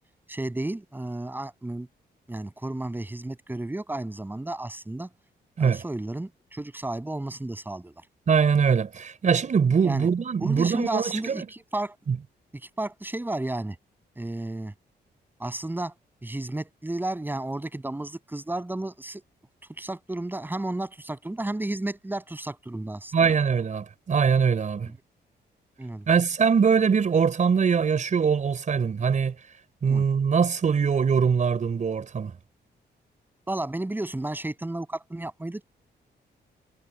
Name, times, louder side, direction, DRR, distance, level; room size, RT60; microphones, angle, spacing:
voice 1, 0.3-1.9 2.3-5.1 5.6-7.9 9.8-10.1 10.4-12.0 12.8-13.8 14.2-14.7 15.4-15.9 16.2-19.2 19.8-23.3 24.8-24.9 25.8-26.1 29.9-30.0 33.5-35.6, right 2 dB, 10° right, 7.8 m, -32 dB
voice 2, 8.3-11.5 12.1-12.2 23.1-24.9 26.1-29.3 29.8-32.3, right 6 dB, 45° right, 5.4 m, -22 dB
wide cardioid pair, 140°, 18 cm